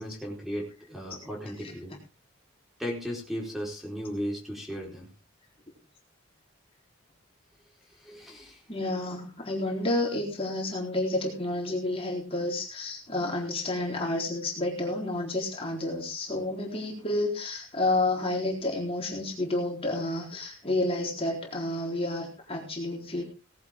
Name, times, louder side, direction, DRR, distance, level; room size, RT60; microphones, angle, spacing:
voice 1, 0.0-2.0 2.8-5.1 8.0-8.6, equal, ahead, -1 dB, 4.5 m, -36 dB
voice 2, 8.7-23.2, left 2 dB, 30° left, -1 dB, 4.0 m, -30 dB
18.5 x 11.5 x 3.7 m, 0.34 s
head